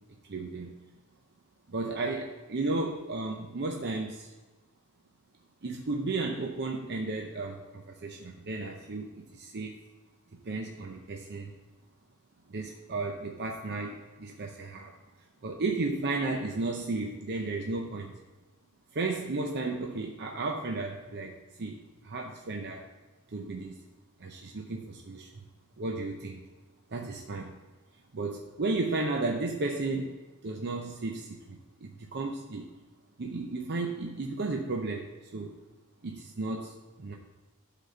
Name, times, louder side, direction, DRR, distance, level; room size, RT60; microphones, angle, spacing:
voice 1, 0.2-0.7 1.7-4.3 5.6-9.8 10.4-11.5 12.5-14.9 15.4-18.1 18.9-22.8 23.3-23.7 24.2-25.3 25.8-26.4 26.9-27.5 28.1-32.7 33.2-35.5 36.0-37.1, right 3 dB, 50° right, 1 dB, 0.7 m, -34 dB
11.5 x 4.2 x 5.3 m, 1.2 s
head